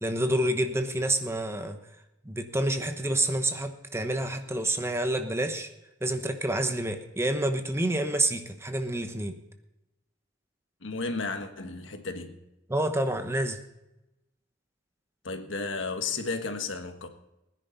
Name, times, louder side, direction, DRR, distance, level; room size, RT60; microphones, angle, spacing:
voice 1, 0.0-1.8 2.2-5.7 6.0-9.4 12.7-13.6, right 1 dB, 15° right, 1.0 m, -28 dB
voice 2, 10.8-12.4 15.2-17.1, left 4 dB, 85° left, 1.5 m, -33 dB
20.0 x 10.0 x 4.1 m
head